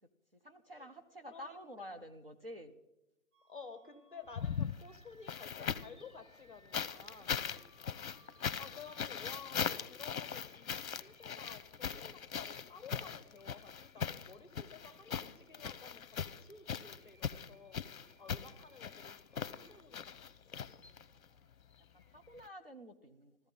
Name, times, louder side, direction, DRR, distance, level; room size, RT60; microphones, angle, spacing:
voice 1, 0.4-2.7 21.1-21.4 21.9-23.4, equal, 40° right, 6 dB, 0.7 m, -50 dB
voice 2, 1.3-1.9 3.4-7.4 8.6-17.8 18.2-20.4, left 5 dB, 35° left, 10 dB, 0.9 m, -53 dB
sound 1, 3.3-19.7, right 2 dB, 65° right, 6.7 m, -69 dB
sound 2, 4.3-6.0 6.7-21.2 22.4-22.5, left 7 dB, 65° left, 0.7 m, -40 dB
14.5 x 13.5 x 5.4 m, 0.93 s
hypercardioid pair, 175°, 46 cm